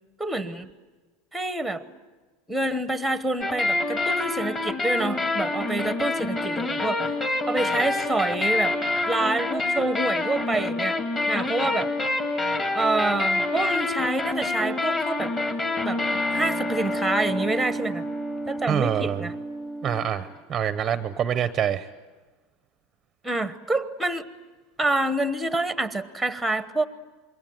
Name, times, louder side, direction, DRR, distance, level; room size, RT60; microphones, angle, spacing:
voice 1, 0.2-0.7 1.3-1.8 2.5-7.1 7.5-8.8 9.1-11.0 11.3-11.9 12.7-15.3 15.8-18.0 18.5-19.3 23.2-24.2 24.8-26.9, right 2 dB, ahead, 12 dB, 1.1 m, -27 dB
sound 1, 3.4-20.3, left 2 dB, 20° left, 2.2 m, -27 dB
voice 2, 18.7-19.3 19.8-21.9, right 9 dB, 20° right, 12 dB, 0.8 m, -26 dB
26.5 x 22.5 x 9.3 m, 1.3 s
supercardioid pair, 165°, 0 cm